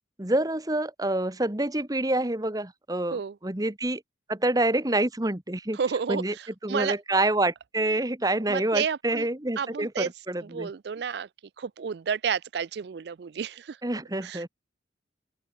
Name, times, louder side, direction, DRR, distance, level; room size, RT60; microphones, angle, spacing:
voice 1, 0.2-4.0 4.3-5.8 6.1-6.3 6.6-10.7 13.8-14.5, right 1 dB, 20° right, 1.2 m, -27 dB
voice 2, 5.7-7.0 8.5-9.3 9.6-10.1 10.4-11.3 11.6-13.8 14.2-14.5, right 6 dB, 60° right, 0.4 m, -31 dB
open air
head